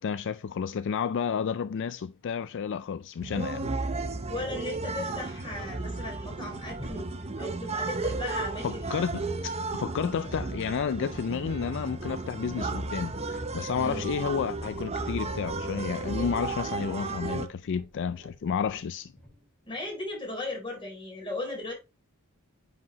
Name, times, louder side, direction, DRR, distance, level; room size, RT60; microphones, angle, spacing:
voice 1, 0.0-3.7 8.6-19.1, left 6 dB, 60° left, 0.4 m, -31 dB
sound 1, 3.2-17.5, right 3 dB, 30° right, 0.7 m, -34 dB
sound 2, 3.9-20.4, left 1 dB, 5° left, 4.3 m, -51 dB
voice 2, 4.3-7.1 7.4-9.0 13.8-14.0 19.7-21.7, left 2 dB, 25° left, 4.0 m, -37 dB
9.3 x 5.1 x 3.1 m
head